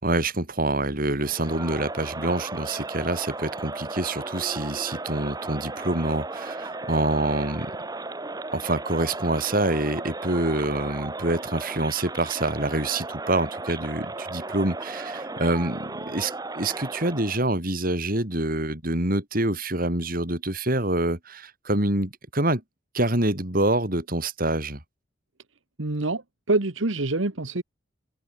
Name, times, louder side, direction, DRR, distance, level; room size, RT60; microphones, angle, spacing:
voice 1, 0.0-7.7 8.5-22.6 22.9-24.8, right 2 dB, 45° right, 4.9 m, -26 dB
Crowd, 1.2-17.5, right 2 dB, 20° right, 1.3 m, -35 dB
voice 2, 25.8-27.6, right 2 dB, 75° right, 1.6 m, -26 dB
open air
head